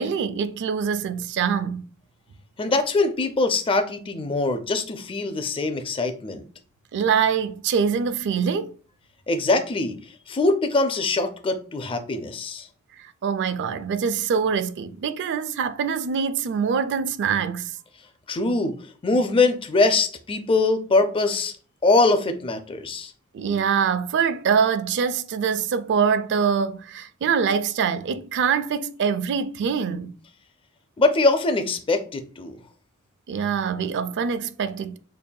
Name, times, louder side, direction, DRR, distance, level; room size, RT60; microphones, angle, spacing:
voice 1, 0.0-1.9 6.9-8.7 13.0-17.7 23.3-30.1 33.3-35.0, right 6 dB, 55° right, 0.3 m, -24 dB
voice 2, 2.6-6.4 9.3-10.0 10.3-12.7 18.3-18.7 19.0-21.5 21.8-23.1 31.0-32.6, left 3 dB, 25° left, 0.4 m, -22 dB
5.3 x 2.6 x 2.2 m
head